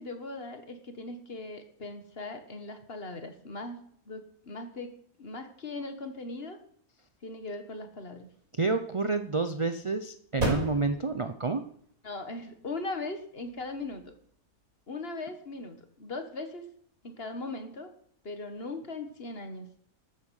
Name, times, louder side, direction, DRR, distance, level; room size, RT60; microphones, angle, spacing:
voice 1, 0.0-3.8 4.1-6.6 7.2-8.3 12.0-14.1 14.9-16.6 17.0-17.9 18.2-19.7, left 2 dB, 40° left, 7 dB, 1.8 m, -39 dB
sound 1, 8.0-15.1, right 2 dB, 65° right, 5.9 m, -39 dB
voice 2, 8.6-11.6, right 3 dB, 35° right, 9 dB, 0.5 m, -29 dB
13.0 x 9.3 x 6.5 m, 0.63 s
omnidirectional pair, 1.6 m